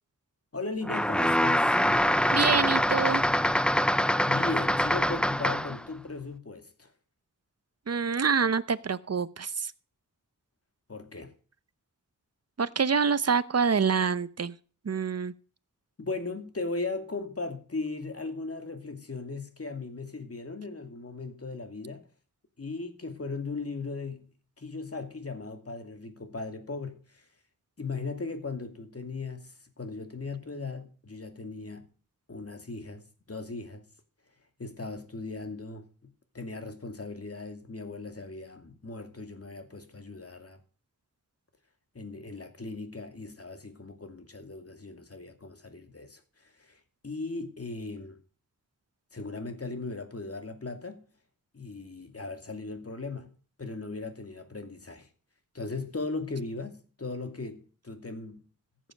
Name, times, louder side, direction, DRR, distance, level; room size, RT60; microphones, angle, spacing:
voice 1, 0.5-1.8 4.0-6.9 10.9-11.3 16.0-22.0 22.6-24.3 24.6-27.2 27.8-31.9 32.3-33.9 34.6-40.6 41.9-46.2 46.6-46.8 47.0-48.2 49.1-51.0 51.5-55.1 55.5-58.4, left 3 dB, 45° left, 2.6 m, -38 dB
sound 1, 0.8-5.8, equal, 5° left, 0.5 m, -24 dB
voice 2, 2.3-3.2 7.9-9.7 12.6-14.5 14.8-15.3, right 5 dB, 45° right, 0.9 m, -26 dB
15.0 x 7.5 x 6.6 m
cardioid pair, 55°, 34 cm